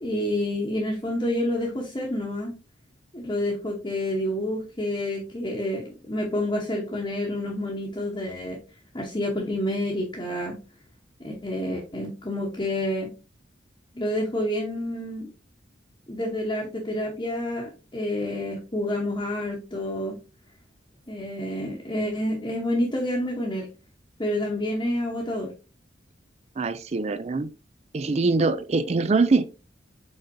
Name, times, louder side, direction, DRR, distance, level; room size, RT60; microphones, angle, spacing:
voice 1, 0.0-2.5 3.1-8.6 8.9-10.6 11.2-13.1 13.9-15.3 16.1-20.2 21.1-23.7 24.2-25.5, left 1 dB, 25° left, 1.0 m, -28 dB
voice 2, 26.6-27.5 27.9-29.5, right 3 dB, 35° right, 0.4 m, -23 dB
5.3 x 3.7 x 2.7 m
head